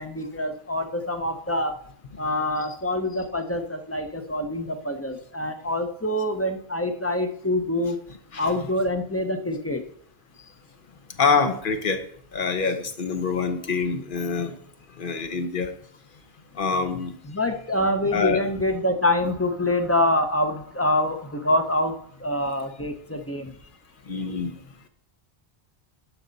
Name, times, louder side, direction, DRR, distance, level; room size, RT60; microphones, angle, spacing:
voice 1, 0.0-1.8 2.2-8.0 8.4-9.8 17.2-23.5, left 1 dB, 15° left, 6 dB, 0.7 m, -25 dB
voice 2, 11.2-12.0 12.3-14.6 15.0-15.7 16.5-17.1 18.1-18.4 24.1-24.6, left 5 dB, 55° left, 8 dB, 1.1 m, -25 dB
11.5 x 6.5 x 4.0 m, 0.64 s
omnidirectional pair, 1.1 m